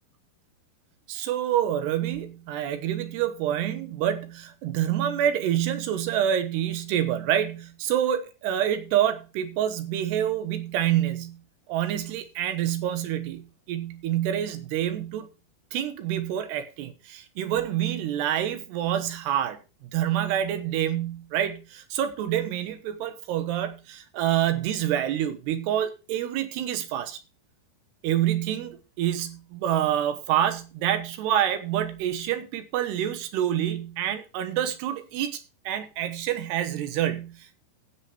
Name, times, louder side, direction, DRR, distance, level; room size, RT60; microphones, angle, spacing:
voice 1, 1.1-11.4 11.7-15.3 15.7-27.2 28.0-37.6, right 11 dB, 90° right, 3.4 m, -27 dB
15.0 x 7.1 x 4.4 m
omnidirectional pair, 4.6 m